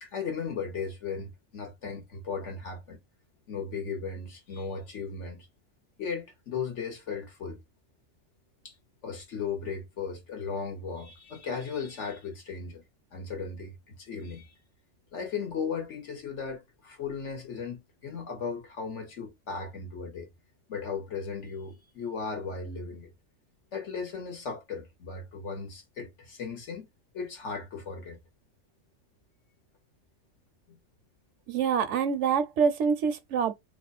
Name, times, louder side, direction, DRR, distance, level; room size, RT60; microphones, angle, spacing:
voice 1, 0.0-3.0 3.5-5.5 6.0-7.6 8.6-8.7 9.0-12.8 13.1-14.5 15.1-20.3 20.7-23.1 23.7-26.9 27.1-28.2 30.7-30.8, left 5 dB, 65° left, 1.5 m, -36 dB
voice 2, 31.5-33.5, right 6 dB, 70° right, 0.8 m, -26 dB
3.0 x 2.3 x 4.0 m
omnidirectional pair, 1.4 m